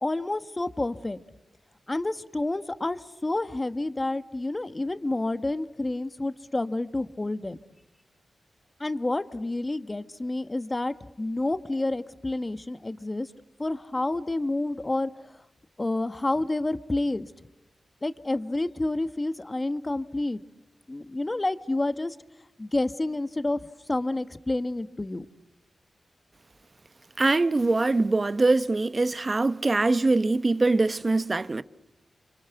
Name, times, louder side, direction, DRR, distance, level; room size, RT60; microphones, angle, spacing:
voice 1, 0.0-1.2 1.9-7.6 8.8-13.3 13.6-15.4 15.8-17.3 18.0-20.4 20.9-22.2 22.6-25.2, left 2 dB, 30° left, 1.4 m, -29 dB
voice 2, 27.2-31.6, right 3 dB, 40° right, 1.0 m, -23 dB
29.5 x 24.5 x 8.2 m
cardioid pair, 45°, 0 cm